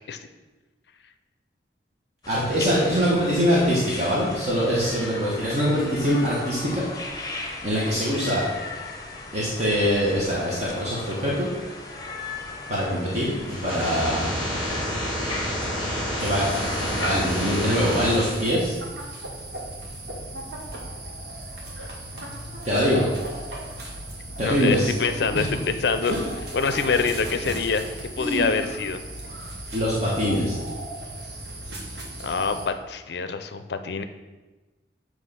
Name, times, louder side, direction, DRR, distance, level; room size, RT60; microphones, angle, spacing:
sound 1, 2.2-17.9, left 2 dB, 20° left, 0.8 m, -37 dB
voice 1, 2.3-6.9 7.6-8.4 9.3-11.5 12.7-14.3 16.2-16.5 16.9-18.8 22.6-23.1 24.4-24.9 25.3-25.4 26.1-26.2 26.8-27.0 28.2-28.5 29.7-30.6, equal, 40° right, -7 dB, 1.2 m, -23 dB
sound 2, 13.5-18.5, equal, 15° right, 2.1 m, -28 dB
sound 3, 16.2-32.7, right 1 dB, 65° right, 1.2 m, -36 dB
voice 2, 24.4-26.2 26.5-27.8 28.2-29.0 32.2-34.0, left 5 dB, 70° left, 9 dB, 0.5 m, -25 dB
7.4 x 3.2 x 5.5 m, 1.2 s
head